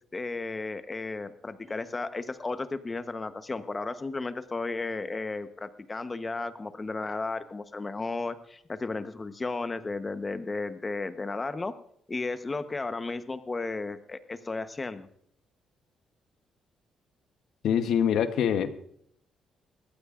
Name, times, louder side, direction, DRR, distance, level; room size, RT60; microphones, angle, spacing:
voice 1, 0.1-11.7 12.1-15.1, left 3 dB, 25° left, 11 dB, 1.0 m, -34 dB
voice 2, 17.6-18.9, left 8 dB, 75° left, 10 dB, 1.0 m, -25 dB
21.0 x 15.0 x 2.5 m, 0.69 s
cardioid pair, 90°, 0 cm